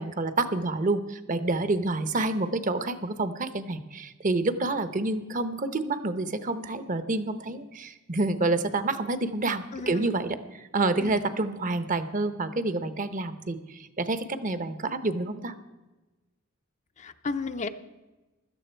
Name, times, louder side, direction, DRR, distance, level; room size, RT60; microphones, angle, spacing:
voice 1, 0.0-15.5, right 2 dB, 40° right, 12 dB, 0.8 m, -28 dB
voice 2, 9.7-10.2 11.0-11.2 17.0-17.7, left 4 dB, 35° left, 9 dB, 0.6 m, -34 dB
16.5 x 12.5 x 4.5 m, 1.1 s
head